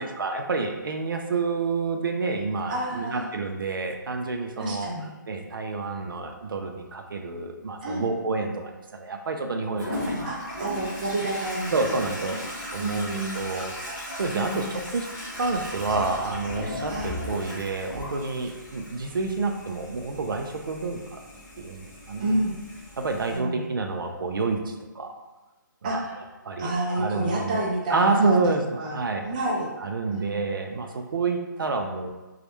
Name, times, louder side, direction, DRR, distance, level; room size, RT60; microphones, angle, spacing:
voice 1, 0.0-4.9 5.3-10.8 11.7-15.1 15.3-21.2 21.6-22.4 23.0-25.1 25.8-26.0 26.4-27.6 27.9-29.3 29.8-32.1, right 3 dB, 85° right, 4 dB, 0.4 m, -29 dB
voice 2, 2.7-3.3 4.6-5.1 7.8-8.1 10.2-11.7 12.2-12.4 12.8-13.4 14.3-14.7 16.9-17.2 22.2-22.5 23.3-23.7 25.8-26.1 26.6-28.9 29.2-29.7 30.1-30.4, right 1 dB, 25° right, -4 dB, 0.4 m, -29 dB
Toilet flush, 9.8-23.4, left 1 dB, 5° left, 0.8 m, -37 dB
2.3 x 2.0 x 2.9 m, 1.2 s
hypercardioid pair, 160°, 11 cm